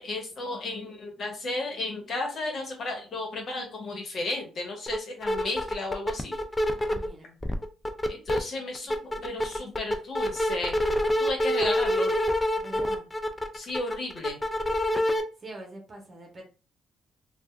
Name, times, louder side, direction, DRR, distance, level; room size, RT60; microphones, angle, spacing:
voice 1, 0.0-6.4 8.1-10.8 11.2-12.1 13.5-14.4, left 2 dB, 50° left, 2 dB, 1.3 m, -33 dB
sound 1, 4.9-5.0 5.2-7.1 7.4-8.4 8.7-15.2, equal, 15° left, 0.5 m, -26 dB
voice 2, 6.8-7.4 12.6-13.1 15.4-16.4, right 1 dB, 35° right, 1 dB, 1.0 m, -44 dB
3.4 x 2.4 x 2.4 m, 0.34 s
cardioid pair, 90°, 0 cm